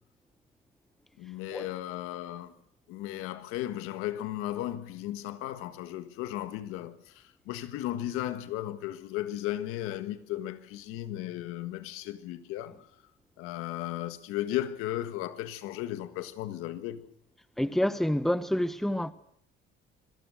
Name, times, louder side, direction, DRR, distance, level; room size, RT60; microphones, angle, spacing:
voice 1, 1.2-2.5 2.9-12.9 13.4-17.0, left 13 dB, 90° left, 1.6 m, -35 dB
voice 2, 17.6-19.1, equal, ahead, 1.1 m, -27 dB
25.5 x 18.5 x 6.5 m
cardioid pair, 95°, 21 cm